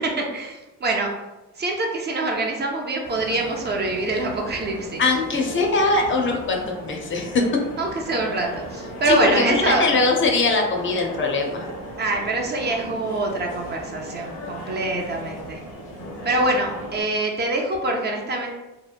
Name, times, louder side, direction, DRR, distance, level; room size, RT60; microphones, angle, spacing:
voice 1, 0.3-1.1 1.6-5.0 7.8-9.8 12.0-15.6 16.2-18.6, right 2 dB, 35° right, 0 dB, 0.4 m, -25 dB
sound 1, 3.0-17.0, equal, 90° left, 0.8 m, -37 dB
voice 2, 5.0-7.6 9.1-11.7, left 3 dB, 40° left, 1 dB, 0.5 m, -21 dB
2.8 x 2.1 x 2.4 m, 1.1 s
cardioid pair, 90°, 30 cm